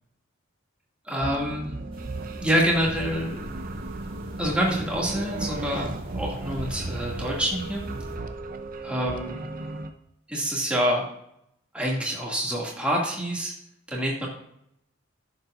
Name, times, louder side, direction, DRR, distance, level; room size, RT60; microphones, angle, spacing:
voice 1, 1.0-1.7 2.4-3.4 4.4-7.8 8.8-9.4 10.3-11.1 11.7-13.5 13.9-14.3, equal, 5° right, -4 dB, 2.2 m, -26 dB
sound 1, 1.2-9.9, right 2 dB, 40° right, 0.6 m, -35 dB
sound 2, 1.9-8.2, equal, 25° right, 1.7 m, -41 dB
11.0 x 7.5 x 2.5 m, 0.75 s
head